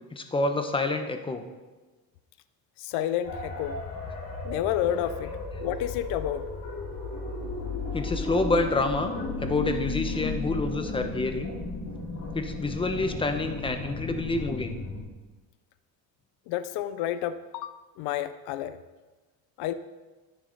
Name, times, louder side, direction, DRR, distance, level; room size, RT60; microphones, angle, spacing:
voice 1, 0.1-1.4 5.3-5.4 7.9-9.1 9.4-11.5 12.3-14.7, left 2 dB, 15° left, 7 dB, 0.9 m, -28 dB
voice 2, 2.8-3.8 4.4-5.3 5.6-6.4 16.5-18.8 19.6-19.7, left 11 dB, 80° left, 12 dB, 0.7 m, -30 dB
sound 1, 3.2-15.0, left 3 dB, 60° left, 3.7 m, -34 dB
11.0 x 9.5 x 4.0 m, 1.2 s
cardioid pair, 130°, 40 cm